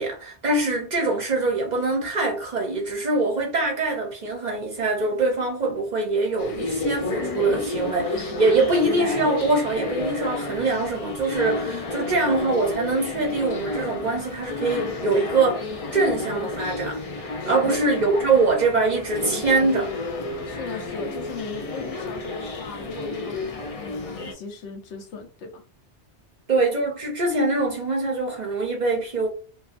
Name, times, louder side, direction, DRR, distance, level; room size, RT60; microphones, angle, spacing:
voice 1, 0.0-15.6 15.9-19.9 26.5-29.3, right 3 dB, 50° right, 0.6 m, -23 dB
sound 1, 6.4-24.3, left 2 dB, 60° left, 0.3 m, -31 dB
voice 2, 17.4-17.8 20.4-25.6, left 4 dB, 85° left, 1.0 m, -37 dB
2.6 x 2.3 x 2.4 m
omnidirectional pair, 1.2 m